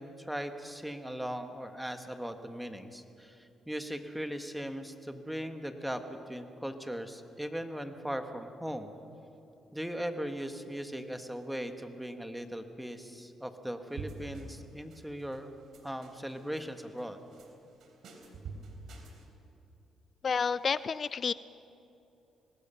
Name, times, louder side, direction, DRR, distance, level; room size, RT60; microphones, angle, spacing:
voice 1, 0.0-3.3 3.7-6.0 6.3-8.9 9.7-15.5 15.8-17.2, equal, 5° right, 7 dB, 1.7 m, -38 dB
sound 1, 13.9-14.6 14.9-15.4 15.7-16.7 17.0-17.5 17.8-19.2, right 3 dB, 70° right, 3.6 m, -45 dB
voice 2, 20.2-21.3, left 6 dB, 45° left, 17 dB, 0.4 m, -30 dB
24.0 x 19.5 x 5.8 m, 2.9 s
cardioid pair, 90°, 0 cm